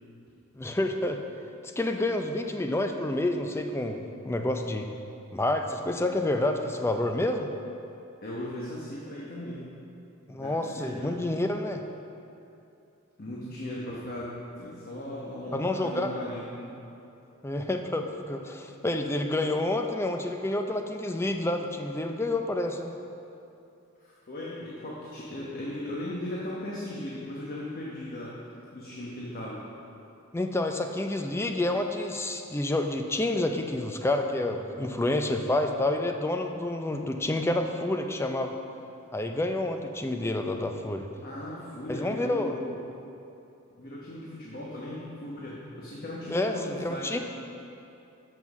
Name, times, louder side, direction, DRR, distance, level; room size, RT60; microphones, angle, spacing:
voice 1, 0.5-1.2 1.8-4.9 5.3-7.5 10.3-11.8 15.5-16.1 17.4-22.9 30.3-38.5 39.1-41.1 41.9-42.5 46.3-47.2, left 1 dB, 10° left, 5 dB, 0.4 m, -29 dB
voice 2, 8.2-9.6 10.3-11.1 13.2-16.7 24.0-28.3 28.7-29.6 41.2-42.7 43.8-47.2, left 1 dB, 45° left, -5 dB, 1.1 m, -37 dB
7.3 x 6.0 x 6.0 m, 2.8 s
head